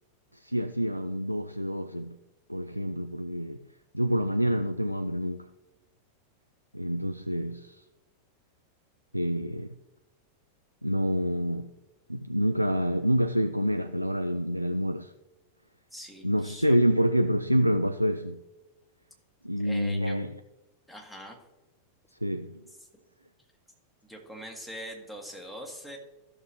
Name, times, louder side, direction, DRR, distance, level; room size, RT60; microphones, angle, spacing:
voice 1, 0.3-2.2 2.5-3.7 3.9-5.5 6.7-7.8 9.1-9.7 10.8-11.7 12.1-15.1 16.2-18.4 19.4-20.3 22.2-22.6, equal, 90° right, 0.3 m, -27 dB
voice 2, 15.9-16.8 19.6-20.2 20.9-21.4 22.8-22.9 24.0-26.0, equal, 5° left, 1.7 m, -43 dB
14.5 x 6.4 x 3.0 m
figure-of-eight pair, 90°, 0 cm